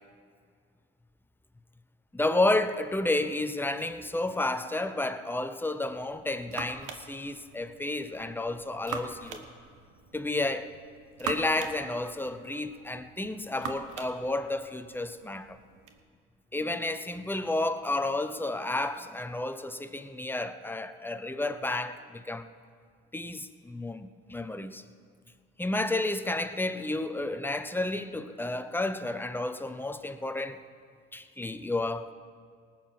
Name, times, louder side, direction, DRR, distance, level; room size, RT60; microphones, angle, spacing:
voice 1, 2.1-9.5 10.1-10.7 11.2-15.6 16.5-22.5 23.1-24.8 25.6-30.6 31.1-32.1, left 2 dB, 5° left, 0.8 m, -31 dB
sound 1, 5.9-16.0, right 6 dB, 75° right, 1.3 m, -43 dB
19.0 x 7.6 x 5.9 m
supercardioid pair, 65°, 31 cm